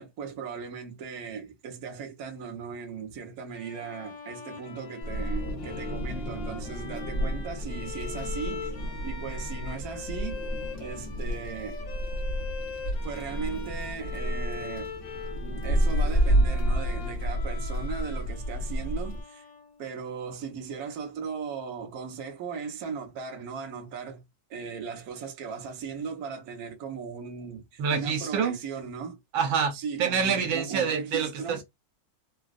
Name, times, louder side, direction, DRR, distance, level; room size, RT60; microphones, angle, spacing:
voice 1, 0.0-8.7 9.0-10.4 10.8-11.8 13.0-14.9 15.4-19.4 19.8-24.2 24.5-29.2 29.7-31.6, right 6 dB, 55° right, 1.3 m, -37 dB
Bowed string instrument, 3.5-20.1, left 5 dB, 65° left, 2.0 m, -42 dB
Wind, 5.0-19.2, equal, 45° left, 1.1 m, -30 dB
voice 2, 27.8-28.6 29.3-31.6, right 6 dB, 80° right, 1.5 m, -27 dB
4.0 x 2.3 x 2.4 m
omnidirectional pair, 2.2 m